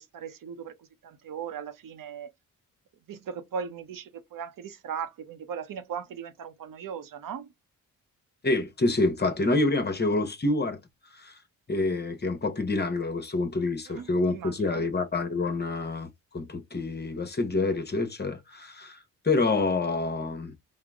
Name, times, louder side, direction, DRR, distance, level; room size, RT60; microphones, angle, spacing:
voice 1, 0.0-2.3 3.1-7.5 13.9-14.9, right 7 dB, 65° right, 0.7 m, -38 dB
voice 2, 8.4-10.8 11.1-11.3 11.7-19.0 19.2-20.6, left 2 dB, 30° left, 0.9 m, -27 dB
3.7 x 2.0 x 3.4 m
cardioid pair, 80°, 35 cm